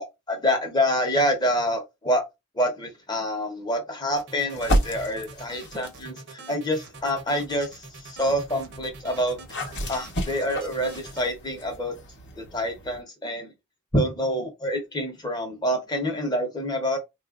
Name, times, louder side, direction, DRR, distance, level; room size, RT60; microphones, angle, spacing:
voice 1, 0.0-2.2 2.5-9.4 9.9-11.9 12.4-13.5 13.9-17.0, equal, 20° left, 0.9 m, -27 dB
sound 1, 4.2-11.3, right 3 dB, 50° right, 0.8 m, -43 dB
sound 2, 4.5-6.1 6.8-13.0, equal, 50° left, 0.8 m, -32 dB
4.0 x 2.4 x 2.4 m
head